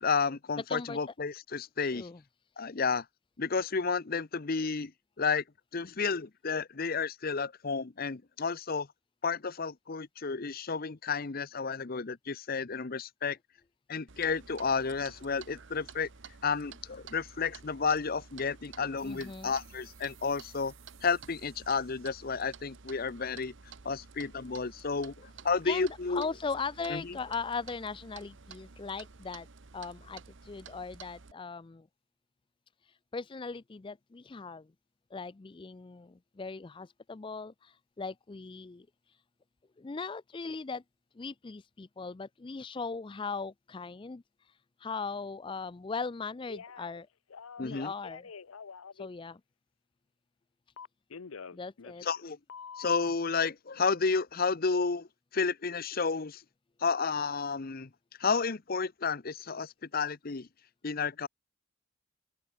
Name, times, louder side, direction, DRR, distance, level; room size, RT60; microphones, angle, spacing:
voice 1, 0.0-2.1 2.6-3.0 3.4-4.9 5.2-5.4 5.7-8.9 9.2-13.4 13.9-16.1 16.4-20.7 21.0-23.5 23.8-26.3 26.9-27.0 47.6-47.9 52.0-52.4 52.8-55.1 55.3-56.4 56.8-57.9 58.2-60.5 60.8-61.3, left 5 dB, 45° left, 0.7 m, -31 dB
voice 2, 0.7-1.0 1.8-2.2 19.0-19.5 25.7-29.5 29.7-31.9 32.8-34.7 35.1-39.2 39.8-40.8 41.2-47.1 47.6-48.3 48.9-49.4 51.5-52.0, left 4 dB, 25° left, 0.4 m, -39 dB
Clock, 14.1-31.3, right 5 dB, 60° right, 1.0 m, -52 dB
sound 1, 19.0-24.1, right 16 dB, 85° right, 4.9 m, -62 dB
Telephone, 46.5-47.0 47.3-49.1 50.8-52.2 52.5-53.1, left 6 dB, 90° left, 0.7 m, -46 dB
open air
head